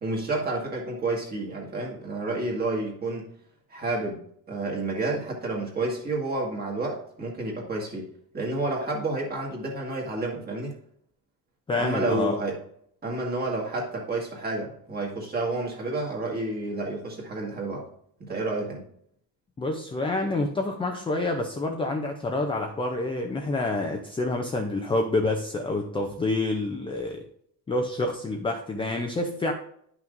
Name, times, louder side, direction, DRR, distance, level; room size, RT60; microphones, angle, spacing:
voice 1, 0.0-3.3 3.7-4.2 4.5-8.1 8.3-10.7 11.8-12.6 13.0-17.9 18.2-18.9, right 2 dB, 25° right, -2 dB, 1.8 m, -30 dB
voice 2, 11.7-12.4 19.6-27.3 27.7-29.5, left 2 dB, 15° left, 2 dB, 0.4 m, -28 dB
10.5 x 5.9 x 2.5 m, 0.67 s
cardioid pair, 180°, 39 cm